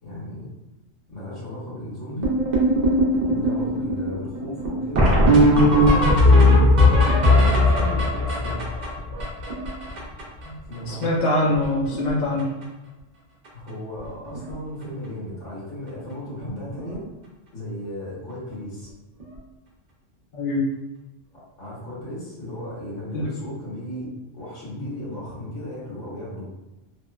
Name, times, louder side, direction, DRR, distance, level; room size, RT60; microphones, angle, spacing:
voice 1, 0.0-0.5 1.1-2.3 3.3-6.8 7.2-8.7 10.7-11.1 13.5-17.0 17.5-18.9 21.3-26.5, left 1 dB, 85° left, -8 dB, 1.5 m, -35 dB
sound 1, 2.2-10.4 10.7-10.8 11.0-11.3 11.5-12.1 12.4-12.6 13.4-13.5 14.0-14.1 14.3-14.5 16.8-16.9 19.2-19.3, left 1 dB, 50° right, 0.6 m, -18 dB
voice 2, 10.9-12.5 20.3-20.6 23.1-23.2, left 2 dB, 55° left, -5 dB, 0.8 m, -23 dB
3.0 x 2.1 x 2.3 m, 1.0 s
omnidirectional pair, 1.2 m